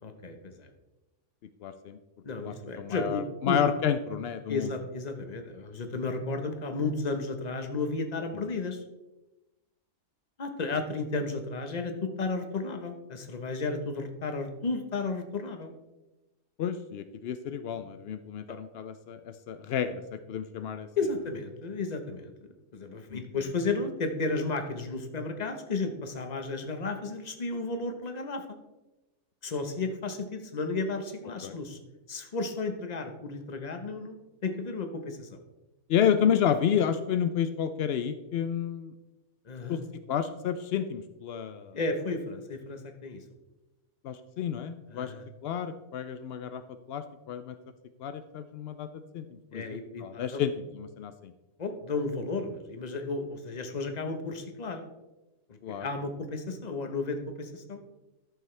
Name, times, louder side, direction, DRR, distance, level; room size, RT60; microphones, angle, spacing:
voice 1, 0.0-0.7 2.2-3.6 4.5-8.8 10.4-15.7 21.0-22.3 22.7-28.4 29.4-31.8 32.1-34.2 34.4-35.4 39.5-39.8 41.7-43.2 44.9-45.3 49.5-50.4 51.6-54.9 55.7-57.8, left 3 dB, 35° left, 6 dB, 0.8 m, -33 dB
voice 2, 1.6-2.0 2.4-4.7 16.6-20.9 23.1-23.2 31.4-31.6 35.9-38.9 39.7-39.8 40.1-41.8 44.0-45.1 45.4-46.6 46.9-47.6 48.0-51.3 55.6-55.9, left 8 dB, 85° left, 10 dB, 0.5 m, -30 dB
12.0 x 6.9 x 3.2 m, 1.0 s
omnidirectional pair, 1.6 m